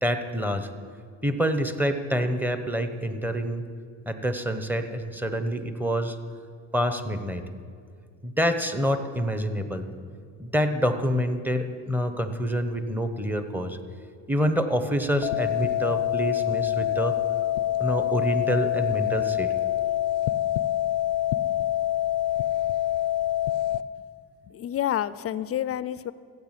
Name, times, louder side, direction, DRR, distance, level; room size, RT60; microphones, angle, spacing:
voice 1, 0.0-0.7 1.2-3.6 4.1-6.2 6.7-7.4 8.2-9.9 10.4-13.8 14.3-17.1 17.8-19.5, equal, 5° right, 8 dB, 1.1 m, -27 dB
sound 1, 15.2-23.8, left 13 dB, 85° left, 0.6 m, -26 dB
voice 2, 24.5-26.1, left 11 dB, 45° left, 17 dB, 0.5 m, -29 dB
15.0 x 8.7 x 7.5 m, 2.2 s
cardioid pair, 95°, 34 cm